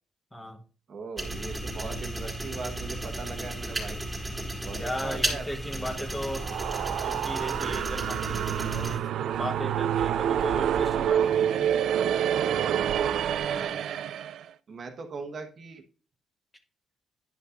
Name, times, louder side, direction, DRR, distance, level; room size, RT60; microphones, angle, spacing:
voice 1, 0.9-4.0 4.6-6.1 13.4-13.8 14.7-15.8, right 4 dB, 50° right, 5 dB, 1.1 m, -40 dB
sound 1, 1.2-9.0, right 1 dB, 15° right, 2.2 m, -34 dB
voice 2, 4.7-6.5 6.9-11.7, equal, 10° left, 5 dB, 1.3 m, -37 dB
sound 2, 6.1-14.4, right 9 dB, 75° right, 0.3 m, -27 dB
10.0 x 5.5 x 2.5 m, 0.39 s
cardioid pair, 90°, 0 cm